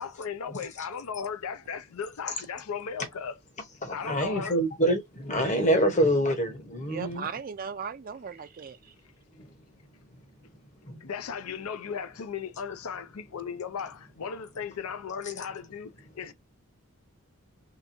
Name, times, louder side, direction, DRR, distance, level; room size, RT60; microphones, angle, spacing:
voice 1, 0.0-3.4 3.9-4.6 11.0-15.9 16.2-16.3, left 6 dB, 80° left, 0.5 m, -36 dB
voice 2, 3.8-7.3 9.4-9.5 10.8-11.0, equal, 35° left, 0.9 m, -26 dB
voice 3, 6.9-8.9, right 6 dB, 40° right, 0.4 m, -37 dB
3.3 x 2.9 x 2.6 m
head